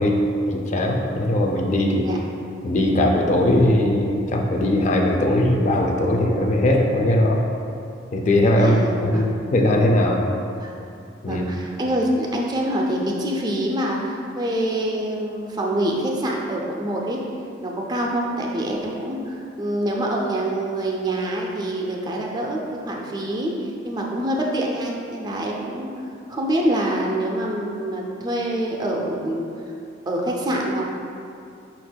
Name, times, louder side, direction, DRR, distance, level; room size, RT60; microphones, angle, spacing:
voice 1, 0.0-2.1 2.6-7.4 8.1-10.2 11.2-11.4, left 1 dB, 40° left, 1 dB, 0.4 m, -19 dB
voice 2, 8.6-9.3 10.6-10.8 11.3-17.2 17.6-25.9 26.3-29.5 30.1-30.9, right 1 dB, 20° right, -1 dB, 0.4 m, -25 dB
5.5 x 4.3 x 2.2 m, 2.5 s
head